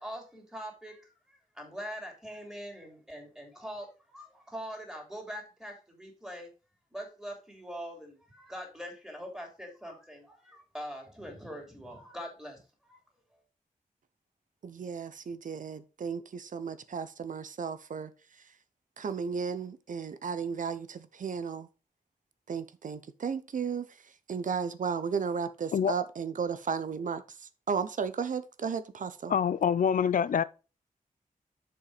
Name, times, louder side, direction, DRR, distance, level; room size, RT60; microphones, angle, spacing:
voice 1, 0.0-6.5 6.9-13.0, equal, 5° right, 3.3 m, -43 dB
voice 2, 14.6-18.1 19.0-21.7 22.5-23.9 24.3-27.2 27.7-29.3, right 6 dB, 70° right, 0.8 m, -34 dB
voice 3, 29.3-30.4, left 7 dB, 75° left, 0.5 m, -25 dB
7.0 x 5.5 x 5.0 m
wide cardioid pair, 125°, 14 cm